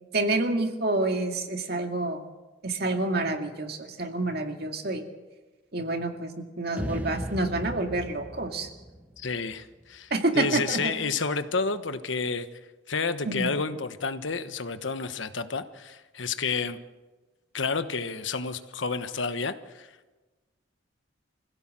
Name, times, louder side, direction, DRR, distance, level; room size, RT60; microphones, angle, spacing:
voice 1, 0.1-2.2 2.6-5.0 5.7-8.7 10.1-11.0 13.3-13.5, right 2 dB, 55° right, 4 dB, 2.2 m, -28 dB
sound 1, 6.8-10.0, equal, 10° right, 1.6 m, -37 dB
voice 2, 9.2-12.5 12.9-16.8 17.5-19.9, left 4 dB, 80° left, 10 dB, 1.2 m, -30 dB
25.0 x 16.5 x 7.6 m, 1.2 s
head